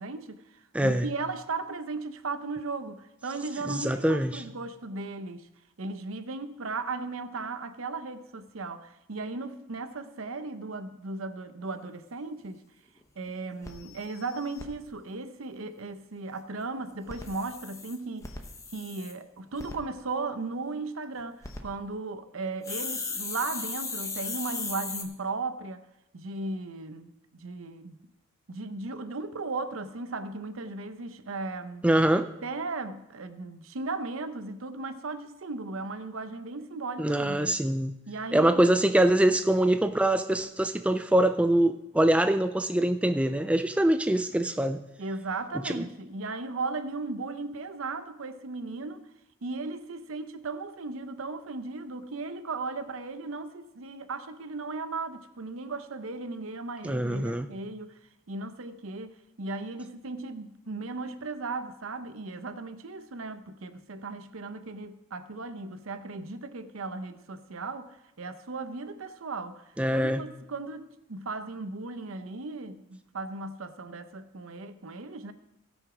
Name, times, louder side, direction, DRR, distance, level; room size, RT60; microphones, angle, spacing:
voice 1, 0.0-5.5 5.8-12.6 13.2-18.3 18.7-25.8 26.1-28.0 28.5-31.9 32.4-37.6 38.1-38.7 45.0-49.1 49.4-57.9 58.3-69.6 69.9-75.3, right 3 dB, 75° right, 0.7 m, -36 dB
voice 2, 0.7-1.1 3.7-4.4 31.8-32.3 37.0-37.9 38.3-44.8 45.6-45.8 56.8-57.5 69.8-70.2, right 1 dB, 5° right, 0.3 m, -24 dB
sound 1, 12.5-12.6 13.0-13.1 13.3-13.4 13.6-14.7 16.9-19.1 19.6-19.8 21.2-21.6 22.6-25.0, left 4 dB, 15° left, 0.9 m, -37 dB
16.5 x 6.2 x 4.9 m
head